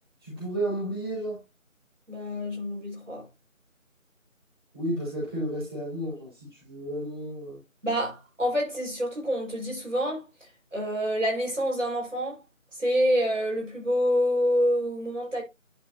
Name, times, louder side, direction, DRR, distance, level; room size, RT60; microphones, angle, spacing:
voice 1, 0.2-1.4 4.7-7.6, right 1 dB, 20° right, 4.2 m, -32 dB
voice 2, 2.1-3.3 7.8-10.2 10.7-12.4 12.8-15.4, equal, 65° right, 5.3 m, -27 dB
11.0 x 5.6 x 2.7 m
figure-of-eight pair, 170°, 40 cm